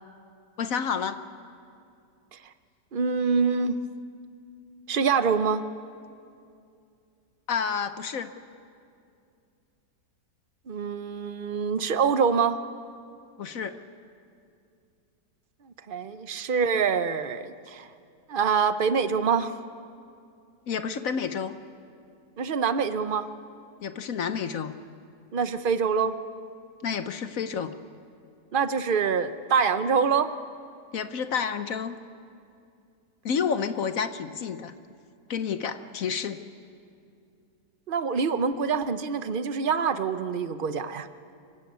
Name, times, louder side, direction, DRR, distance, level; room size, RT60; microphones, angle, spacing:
voice 1, 0.6-1.2 7.5-8.3 13.4-13.8 20.7-21.6 23.8-24.7 26.8-27.7 30.9-32.0 33.2-34.7 35.3-36.4, left 6 dB, 60° left, 10 dB, 1.1 m, -29 dB
voice 2, 2.9-3.7 4.9-5.6 10.7-12.6 15.9-17.9 18.3-19.5 22.4-23.3 25.3-26.1 28.5-30.3 37.9-41.1, right 6 dB, 50° right, 11 dB, 0.6 m, -25 dB
25.5 x 17.0 x 9.5 m, 2.4 s
omnidirectional pair, 1.9 m